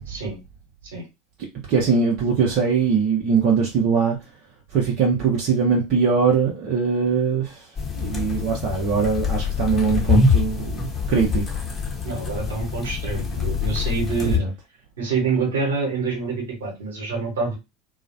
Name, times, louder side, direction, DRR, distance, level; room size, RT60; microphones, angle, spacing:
voice 1, 0.1-0.4 0.9-1.0 12.0-14.4 15.0-17.6, right 4 dB, 75° right, 1.0 m, -26 dB
voice 2, 1.7-4.2 4.7-7.7 8.0-11.6 14.2-14.5, right 5 dB, 50° right, 0.7 m, -21 dB
sound 1, 7.8-14.4, left 5 dB, 25° left, 0.8 m, -24 dB
2.3 x 2.0 x 2.6 m
figure-of-eight pair, 75°, 0 cm